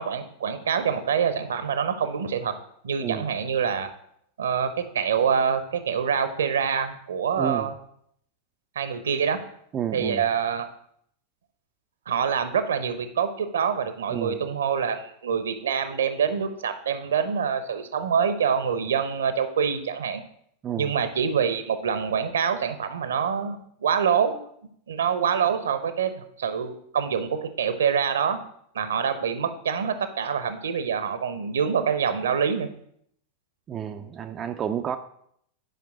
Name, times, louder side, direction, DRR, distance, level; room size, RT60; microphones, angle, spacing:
voice 1, 0.0-2.5 2.8-3.9 4.4-7.7 8.7-9.4 9.9-10.7 12.1-20.2 20.8-24.4 24.9-28.4 28.7-32.7, right 7 dB, 65° right, 10 dB, 0.9 m, -25 dB
voice 2, 7.4-7.7 9.7-10.3 14.1-14.4 20.6-21.0 33.7-35.0, right 8 dB, 25° right, 6 dB, 0.5 m, -30 dB
9.2 x 5.2 x 4.9 m, 0.69 s
figure-of-eight pair, 90°, 0 cm